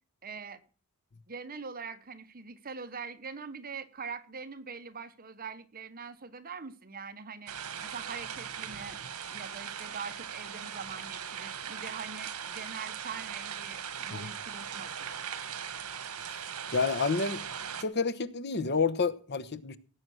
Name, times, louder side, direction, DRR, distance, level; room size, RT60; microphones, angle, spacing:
voice 1, 0.2-0.6 1.3-7.5 7.8-9.0 9.3-14.9, right 5 dB, 40° right, 1.1 m, -43 dB
sound 1, 7.5-17.8, right 8 dB, 75° right, 1.5 m, -39 dB
voice 2, 16.7-17.4 17.8-19.8, left 4 dB, 50° left, 1.1 m, -29 dB
17.5 x 8.2 x 6.3 m
head